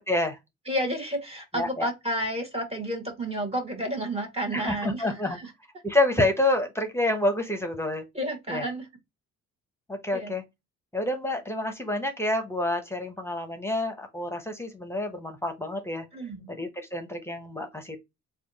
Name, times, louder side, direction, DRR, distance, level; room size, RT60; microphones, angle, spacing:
voice 1, 0.1-0.4 1.5-1.9 4.5-5.4 5.8-8.0 8.5-8.6 9.9-10.4 10.9-16.1 16.5-18.0, left 2 dB, 10° left, 0.9 m, -28 dB
voice 2, 0.7-5.5 8.1-8.9 10.1-10.3 16.1-16.5, right 1 dB, 20° right, 1.5 m, -31 dB
3.4 x 2.3 x 4.1 m
cardioid pair, 90°, 30 cm